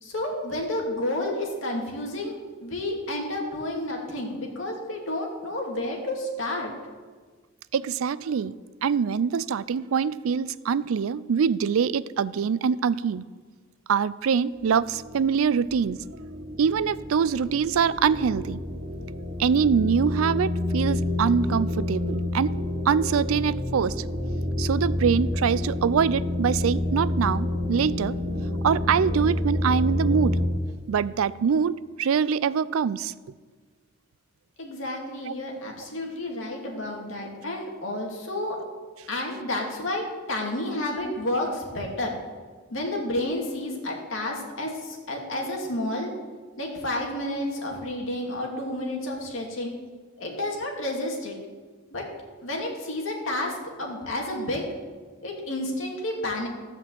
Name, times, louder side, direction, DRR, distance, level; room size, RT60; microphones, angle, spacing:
voice 1, 0.0-6.7 34.6-38.6 39.1-40.0 40.3-42.1 42.7-46.1 46.6-49.7 50.2-51.4 51.9-52.0 52.4-53.5 53.8-54.7 55.2-56.5, left 1 dB, 70° left, 0 dB, 2.3 m, -30 dB
voice 2, 7.7-8.6 8.8-13.3 13.9-16.0 16.6-18.6 19.4-22.6 22.9-24.0 24.6-28.2 28.6-30.4 30.9-33.1 35.3-35.4, right 6 dB, 90° right, 18 dB, 0.4 m, -24 dB
sound 1, 14.6-30.5, left 1 dB, 50° right, 1.8 m, -29 dB
14.0 x 5.3 x 7.5 m, 1.5 s
head